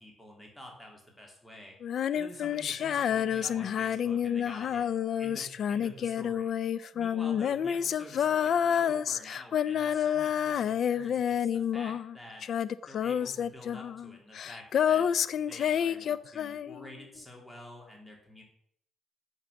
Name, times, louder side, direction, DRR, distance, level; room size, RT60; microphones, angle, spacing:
voice 1, 0.0-1.8 2.1-4.9 5.2-6.5 6.9-12.4 12.9-18.4, left 1 dB, 10° left, 0 dB, 2.9 m, -48 dB
Female singing, 1.8-12.2 12.4-16.9, left 9 dB, 65° left, 0.4 m, -29 dB
7.7 x 7.3 x 7.0 m, 0.71 s
cardioid pair, 90°, 0 cm